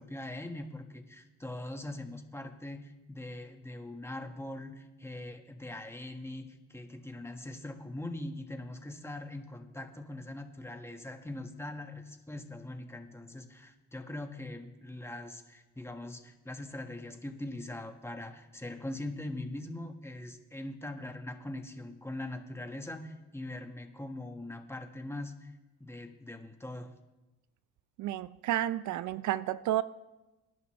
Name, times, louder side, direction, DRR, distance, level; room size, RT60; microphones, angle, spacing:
voice 1, 0.0-25.5 25.8-26.9, left 1 dB, 10° left, 5 dB, 1.5 m, -42 dB
voice 2, 28.0-29.8, right 13 dB, 75° right, 16 dB, 0.5 m, -31 dB
24.0 x 11.0 x 3.3 m, 1.1 s
cardioid pair, 90°, 30 cm